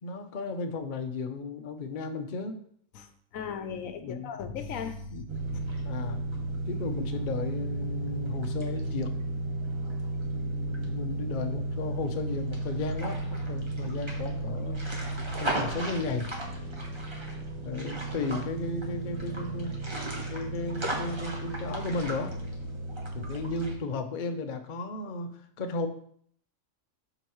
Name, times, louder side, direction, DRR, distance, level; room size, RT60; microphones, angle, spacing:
voice 1, 0.0-2.6 4.0-4.3 5.1-5.2 5.8-6.2 6.7-9.1 10.2-14.8 15.4-16.3 17.6-19.8 20.3-22.4 23.1-25.3 25.6-25.9, left 3 dB, 45° left, 6 dB, 0.7 m, -34 dB
voice 2, 2.9-5.6, left 6 dB, 80° left, 9 dB, 1.1 m, -38 dB
sound 1, 5.3-23.8, right 2 dB, 20° right, 1.1 m, -33 dB
11.5 x 3.9 x 3.1 m, 0.62 s
omnidirectional pair, 1.4 m